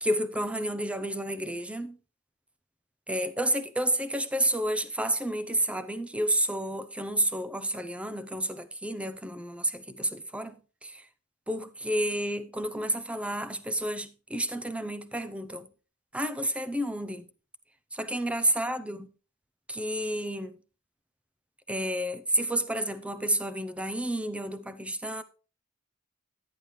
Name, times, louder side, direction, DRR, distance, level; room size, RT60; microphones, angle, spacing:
voice 1, 0.0-2.0 3.1-11.1 11.5-15.7 16.1-17.3 17.9-19.1 19.7-20.5 21.7-25.2, right 1 dB, 5° right, 0.6 m, -30 dB
10.5 x 9.5 x 3.2 m
head